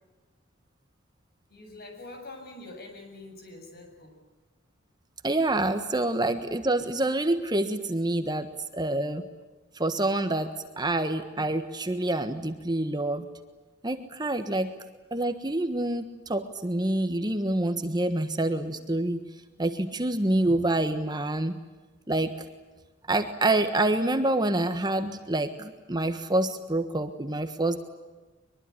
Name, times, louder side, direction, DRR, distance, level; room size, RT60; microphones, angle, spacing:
voice 1, 1.5-4.2, left 2 dB, 50° left, 4 dB, 7.4 m, -45 dB
voice 2, 5.2-9.3 9.8-13.3 13.8-14.7 15.1-19.2 19.6-21.6 22.1-22.3 23.1-27.8, right 2 dB, 20° right, 9 dB, 1.4 m, -27 dB
23.0 x 23.0 x 9.9 m, 1.2 s
head